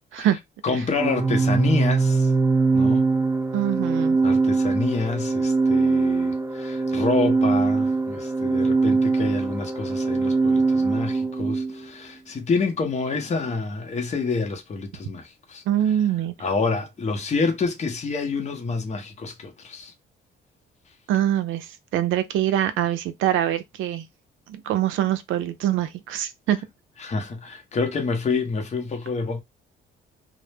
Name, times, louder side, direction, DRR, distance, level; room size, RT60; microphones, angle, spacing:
voice 1, 0.6-2.3 2.7-3.1 4.2-15.6 16.4-19.9 27.0-29.4, left 4 dB, 35° left, 0.7 m, -28 dB
Organ, 1.0-11.7, right 3 dB, 10° right, 0.3 m, -22 dB
voice 2, 3.5-4.2 15.7-16.3 21.1-24.1 24.5-26.6, right 11 dB, 85° right, 0.5 m, -24 dB
2.0 x 2.0 x 3.2 m
cardioid pair, 90°, 20 cm